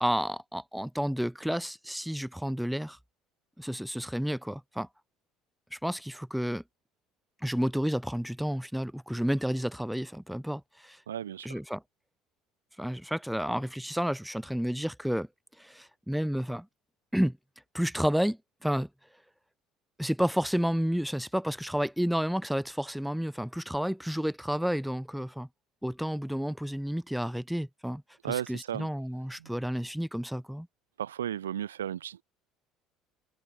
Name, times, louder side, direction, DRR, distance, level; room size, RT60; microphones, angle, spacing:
voice 1, 0.0-3.0 3.6-4.9 5.7-6.6 7.4-11.0 11.4-11.8 12.8-15.3 15.6-16.7 17.1-17.4 17.7-18.9 20.0-25.5 25.8-28.0 28.3-30.7, equal, ahead, 0.4 m, -31 dB
voice 2, 11.1-11.6 28.2-28.9 29.4-29.5 31.0-32.2, right 10 dB, 75° right, 0.3 m, -34 dB
figure-of-eight pair, 60°, 0 cm